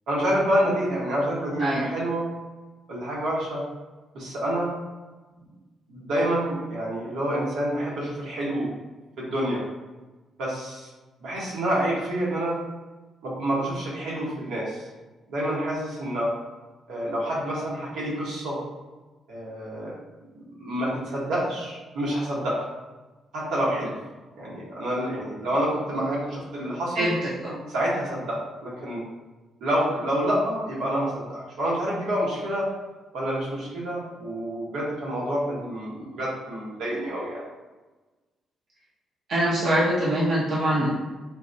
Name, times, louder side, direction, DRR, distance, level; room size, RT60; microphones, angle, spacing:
voice 1, 0.1-2.3 2.9-3.6 4.1-4.7 5.9-8.7 9.2-9.6 10.4-10.9 11.2-12.6 13.2-14.8 15.3-16.3 16.9-18.6 19.3-19.9 20.6-22.7 23.3-23.9 24.3-27.1 27.7-29.0 29.6-32.7 33.1-37.4, right 1 dB, 85° right, -5 dB, 1.0 m, -28 dB
voice 2, 39.3-40.9, right 1 dB, 60° right, -6 dB, 0.6 m, -23 dB
3.9 x 2.1 x 2.6 m, 1.2 s
cardioid pair, 125°, 0 cm